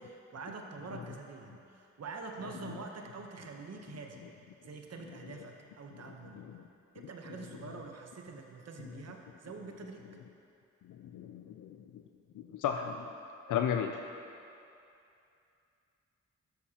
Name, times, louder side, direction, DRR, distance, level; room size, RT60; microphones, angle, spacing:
voice 1, 0.0-4.3 4.6-6.4 6.9-10.0, right 4 dB, 55° right, 2 dB, 1.0 m, -45 dB
voice 2, 11.0-11.7 12.4-13.1 13.5-14.0, left 8 dB, 80° left, 4 dB, 0.5 m, -33 dB
12.5 x 6.7 x 2.9 m, 2.6 s
cardioid pair, 50°, 30 cm